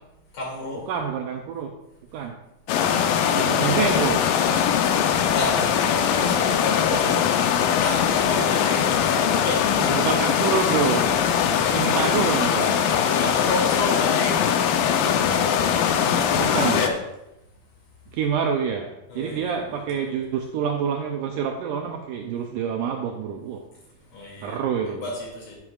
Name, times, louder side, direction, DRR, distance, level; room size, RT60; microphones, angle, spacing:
voice 1, 0.3-0.8 5.2-7.1 7.8-9.7 13.2-14.4 16.2-17.0 19.1-20.0 24.1-24.6 24.9-25.6, left 3 dB, 60° left, -3 dB, 3.9 m, -31 dB
voice 2, 0.9-1.8 2.1-2.4 3.3-4.6 6.9-7.2 9.7-11.2 11.7-12.9 16.4-17.0 18.1-23.7 24.4-25.1, right 7 dB, 80° right, 4 dB, 1.9 m, -27 dB
sound 1, 2.7-16.9, left 8 dB, 80° left, 2.3 m, -21 dB
10.5 x 9.5 x 2.4 m, 0.89 s
omnidirectional pair, 4.2 m